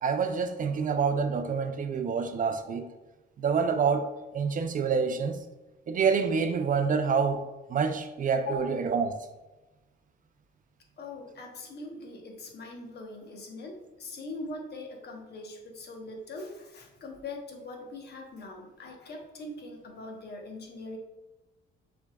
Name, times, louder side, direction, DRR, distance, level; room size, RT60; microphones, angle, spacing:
voice 1, 0.0-2.9 3.4-4.1 4.3-5.4 5.9-7.4 7.7-9.1, right 5 dB, 45° right, 0.4 m, -27 dB
voice 2, 11.0-21.0, left 2 dB, 55° left, 1.0 m, -41 dB
6.1 x 3.5 x 2.3 m
cardioid pair, 90°, 20 cm